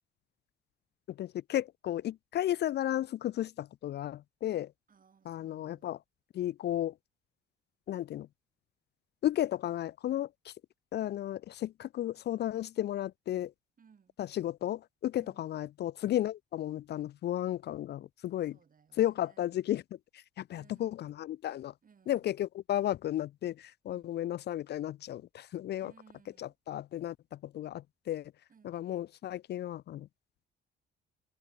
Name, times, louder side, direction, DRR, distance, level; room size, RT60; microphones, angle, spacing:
voice 1, 1.1-4.7 5.3-6.0 6.3-6.9 7.9-8.3 9.2-10.5 10.9-13.5 14.2-18.6 19.0-19.8 20.1-21.7 22.1-25.9 26.4-28.3 28.6-30.1, left 12 dB, 55° left, 0.4 m, -34 dB
voice 2, 4.9-5.9 13.8-14.1 15.1-15.4 18.5-19.5 20.5-21.0 21.8-22.3 23.9-24.2 25.8-26.5 28.5-28.8, right 6 dB, 45° right, 6.7 m, -63 dB
open air
cardioid pair, 90°, 20 cm